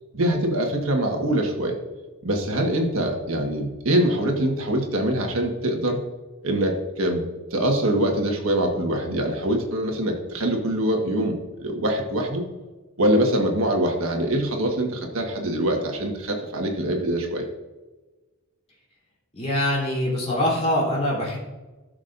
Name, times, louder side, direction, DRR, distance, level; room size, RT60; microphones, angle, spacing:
voice 1, 0.1-1.8 2.2-6.0 6.4-7.3 7.5-12.5 13.0-17.5, right 1 dB, 70° right, 2 dB, 1.6 m, -24 dB
voice 2, 19.3-21.4, left 1 dB, 30° left, -5 dB, 3.5 m, -23 dB
17.0 x 6.4 x 2.6 m, 1.2 s
head